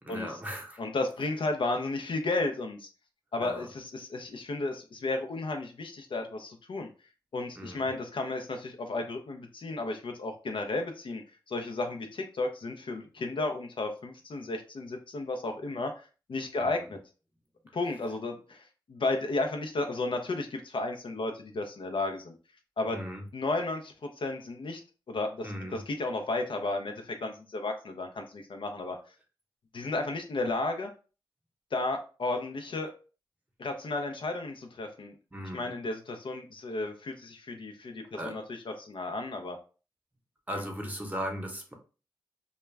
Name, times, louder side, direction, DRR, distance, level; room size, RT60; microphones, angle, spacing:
voice 1, 0.0-0.8 3.4-3.7 7.6-7.8 16.6-16.9 22.9-23.2 25.4-25.8 35.3-35.7 38.2-38.3 40.5-41.7, equal, 15° right, 2 dB, 0.8 m, -37 dB
voice 2, 0.8-2.9 3.3-6.9 7.3-11.2 11.5-15.9 16.3-17.0 17.7-22.3 22.8-23.0 23.3-24.8 25.1-29.0 29.7-30.9 31.7-32.9 33.6-35.1 35.5-39.6 40.5-40.6, left 2 dB, 65° left, 4 dB, 0.5 m, -33 dB
2.3 x 2.1 x 3.2 m, 0.35 s
cardioid pair, 50°, 9 cm